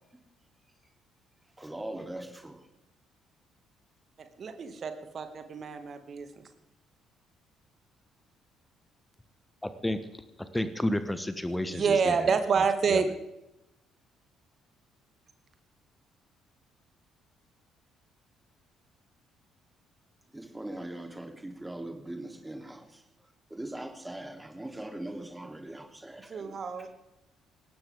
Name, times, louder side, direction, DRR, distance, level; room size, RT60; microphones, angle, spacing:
voice 1, 1.6-2.6 20.3-23.0 23.5-26.9, right 1 dB, 10° right, 4 dB, 3.4 m, -41 dB
voice 2, 4.4-6.4 11.7-13.1 26.3-26.9, right 5 dB, 40° right, 8 dB, 2.2 m, -28 dB
voice 3, 9.6-10.0 10.4-12.3 12.9-13.0, left 1 dB, 10° left, 12 dB, 1.4 m, -31 dB
20.0 x 17.5 x 3.7 m, 0.91 s
figure-of-eight pair, 45°, 0 cm